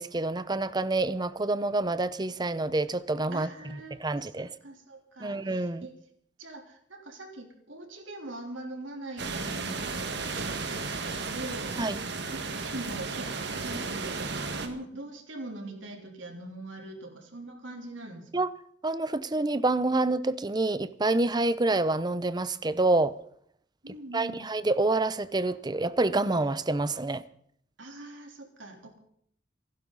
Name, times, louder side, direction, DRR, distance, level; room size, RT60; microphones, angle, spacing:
voice 1, 0.0-3.5 4.0-4.5 5.2-5.9 11.8-12.0 18.3-18.5 18.8-23.1 24.1-27.2, right 2 dB, 20° right, 15 dB, 0.7 m, -27 dB
voice 2, 3.3-5.9 6.4-11.8 12.5-18.3 23.8-24.4 27.8-29.0, right 1 dB, 90° right, 3 dB, 3.5 m, -42 dB
sound 1, 9.2-14.7, right 4 dB, 65° right, 1.9 m, -34 dB
27.0 x 12.0 x 4.1 m, 0.65 s
head